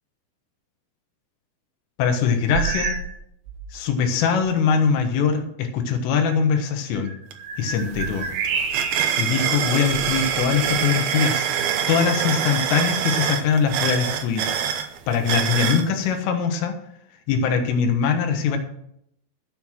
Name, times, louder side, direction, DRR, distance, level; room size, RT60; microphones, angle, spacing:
voice 1, 2.0-3.0 3.7-7.1 7.6-8.3 9.2-14.5 15.1-16.7 17.3-18.6, left 6 dB, 80° left, 5 dB, 3.7 m, -22 dB
sound 1, 2.5-3.2 3.5-3.8 4.5-4.6 7.0-9.3 9.8-10.9, right 5 dB, 70° right, 3.6 m, -29 dB
sound 2, 7.3-7.4 7.7-15.9, right 8 dB, 85° right, 2.1 m, -25 dB
13.0 x 7.4 x 6.1 m, 0.75 s
omnidirectional pair, 5.8 m